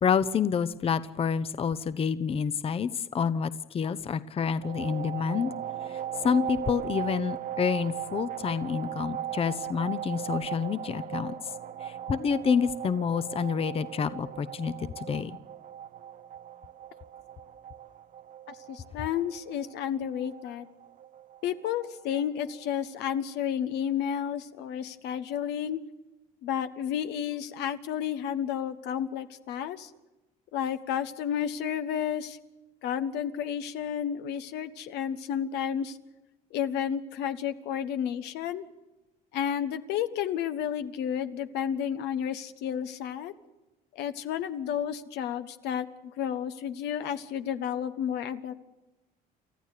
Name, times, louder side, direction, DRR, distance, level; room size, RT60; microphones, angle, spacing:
voice 1, 0.0-5.5 5.9-11.3 11.8-15.4, left 6 dB, 35° left, 14 dB, 0.7 m, -28 dB
sound 1, 4.6-23.2, right 10 dB, 50° right, 0.9 m, -39 dB
voice 2, 18.5-20.7 21.4-25.8 26.4-29.9 30.5-32.4 32.8-36.0 36.5-38.7 39.3-43.3 43.9-45.9 46.2-48.5, left 9 dB, 85° left, 10 dB, 1.2 m, -31 dB
29.0 x 14.0 x 6.7 m, 1.0 s
cardioid pair, 110°, 17 cm